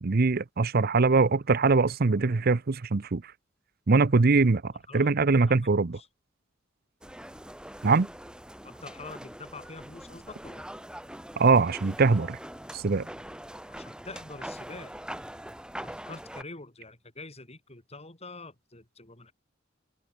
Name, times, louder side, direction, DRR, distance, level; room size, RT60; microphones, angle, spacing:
voice 1, 0.0-3.2 3.9-6.0 7.8-8.1 11.4-12.4 12.7-13.1, right 4 dB, 50° right, 0.7 m, -22 dB
voice 2, 5.6-6.1 8.6-10.7 13.7-15.0 15.8-19.3, left 3 dB, 35° left, 5.2 m, -45 dB
sound 1, 7.0-16.4, right 1 dB, 5° right, 4.5 m, -43 dB
open air
head